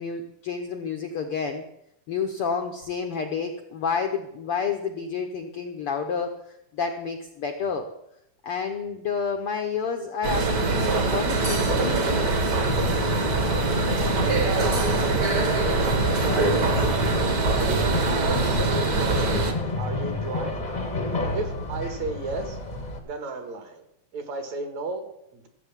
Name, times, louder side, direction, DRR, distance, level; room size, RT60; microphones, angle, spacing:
voice 1, 0.0-1.6 2.1-7.9 8.4-12.4, left 5 dB, 70° left, 5 dB, 1.3 m, -30 dB
sound 1, 10.2-19.5, right 3 dB, 40° right, 1.4 m, -23 dB
sound 2, 12.6-23.0, left 2 dB, 30° left, 0.7 m, -30 dB
voice 2, 14.4-15.9 16.2-16.9 17.5-19.5 19.8-20.7 21.3-22.6 23.0-23.8 24.1-25.5, right 3 dB, 65° right, 7 dB, 2.7 m, -34 dB
14.5 x 7.8 x 7.3 m, 0.81 s
omnidirectional pair, 3.7 m